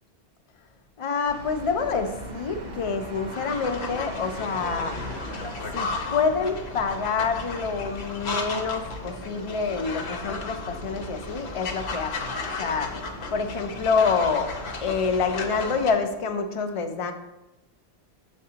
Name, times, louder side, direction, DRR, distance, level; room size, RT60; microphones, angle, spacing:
voice 1, 1.0-4.9 5.7-12.9 13.3-14.5 14.8-17.1, left 5 dB, 55° left, 7 dB, 0.3 m, -27 dB
sound 1, 1.3-15.9, equal, 45° right, 0.9 m, -40 dB
sound 2, 3.3-15.9, left 3 dB, 75° left, 1.0 m, -35 dB
6.6 x 5.2 x 2.8 m, 0.94 s
omnidirectional pair, 1.1 m